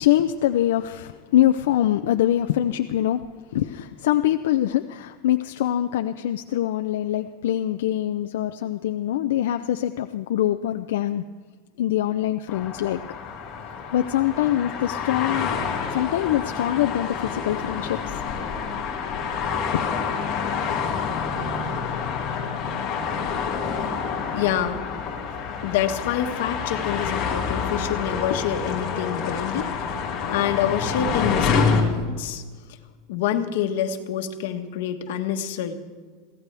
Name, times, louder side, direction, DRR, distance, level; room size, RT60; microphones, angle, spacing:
voice 1, 0.0-3.2 3.5-11.2 11.8-13.0 13.9-15.5 15.9-18.2 19.1-19.2 19.7-19.8, left 12 dB, 85° left, 7 dB, 0.5 m, -24 dB
sound 1, 12.5-31.8, left 6 dB, 25° left, 2.1 m, -28 dB
voice 2, 24.3-24.8 25.6-29.7 30.0-32.4 33.1-35.8, left 9 dB, 65° left, 5 dB, 1.5 m, -27 dB
23.5 x 16.0 x 3.4 m, 1.5 s
supercardioid pair, 175°, 0 cm